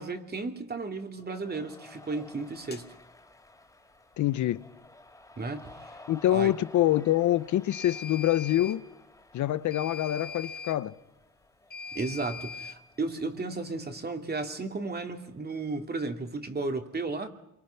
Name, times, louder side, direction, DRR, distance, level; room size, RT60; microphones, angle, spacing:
voice 1, 0.0-2.9 5.4-6.0 6.3-6.5 11.9-17.3, right 3 dB, 30° right, 2.7 m, -34 dB
Cheering, 1.2-16.0, left 2 dB, 10° left, 3.1 m, -54 dB
sound 1, 2.7-2.8 7.7-8.8 9.7-10.8 11.7-12.8, left 5 dB, 30° left, 1.9 m, -41 dB
voice 2, 4.2-4.6 6.1-8.9 9.3-11.0, left 13 dB, 75° left, 0.9 m, -25 dB
29.0 x 23.5 x 5.8 m
cardioid pair, 90°, 30 cm